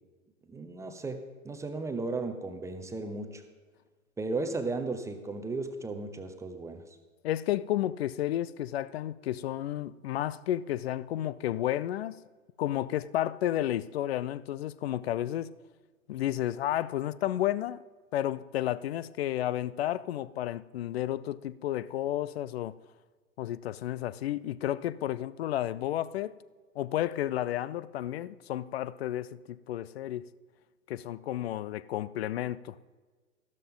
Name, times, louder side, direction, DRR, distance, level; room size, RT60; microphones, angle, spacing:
voice 1, 0.5-1.2 1.4-3.4 4.2-6.8, right 3 dB, 5° right, 0.7 m, -35 dB
voice 2, 7.2-12.2 12.6-15.5 16.1-17.8 18.1-22.8 23.4-26.4 26.8-30.3 30.9-32.8, left 13 dB, 50° left, 0.5 m, -32 dB
13.0 x 13.0 x 3.8 m
figure-of-eight pair, 110°, 41 cm